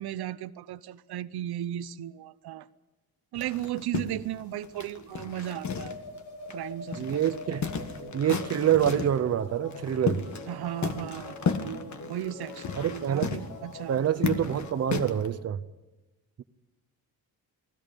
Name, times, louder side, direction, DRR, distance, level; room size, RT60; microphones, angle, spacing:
voice 1, 0.0-2.7 3.3-6.0 6.5-7.2 7.6-7.7 10.5-14.0, right 12 dB, 80° right, 0.8 m, -36 dB
sound 1, 3.3-6.2 6.5-6.6 6.9-9.2 9.7-10.5 10.8-15.3, left 5 dB, 45° left, 1.6 m, -33 dB
sound 2, 5.4-15.2, left 3 dB, 85° left, 5.3 m, -44 dB
voice 2, 7.0-7.6 8.1-10.2 12.8-13.3 13.9-15.6, right 10 dB, 40° right, 0.9 m, -26 dB
29.5 x 20.5 x 5.3 m
wide cardioid pair, 175°, 38 cm